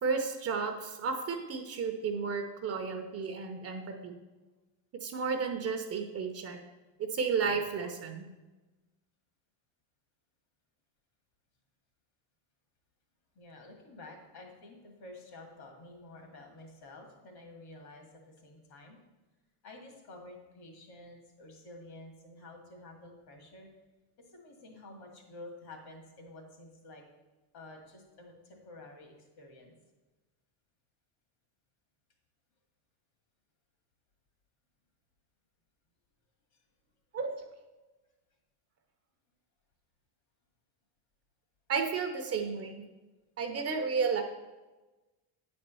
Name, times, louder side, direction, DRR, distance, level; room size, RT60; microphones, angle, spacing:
voice 1, 0.0-4.2 5.0-6.6 7.0-8.3 37.1-37.3 41.7-42.8 43.4-44.2, right 5 dB, 35° right, 5 dB, 0.7 m, -32 dB
voice 2, 13.4-19.0 19.6-23.7 24.2-27.0 27.5-29.7 36.5-36.6, left 2 dB, 55° left, 2 dB, 2.2 m, -50 dB
8.3 x 4.3 x 6.9 m, 1.2 s
cardioid pair, 150°, 44 cm